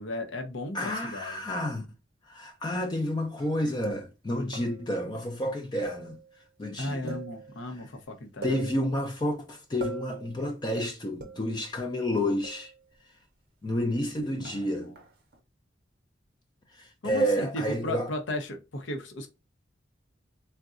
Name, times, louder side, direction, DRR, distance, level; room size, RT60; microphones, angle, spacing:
voice 1, 0.0-1.4 6.8-8.6 17.0-19.3, left 1 dB, 80° left, 0.7 m, -35 dB
voice 2, 0.7-1.9 2.3-6.2 6.6-7.2 8.4-12.7 13.6-15.0 16.8-18.1, left 1 dB, 20° left, 0.3 m, -30 dB
sound 1, 3.4-3.7 4.5-5.0 5.8-6.4 7.1-7.7 8.0-8.1 8.4-9.2 9.8-10.4 11.2-11.7 12.4-12.9 14.4-15.4, right 6 dB, 55° right, 0.6 m, -43 dB
3.7 x 2.2 x 2.4 m
head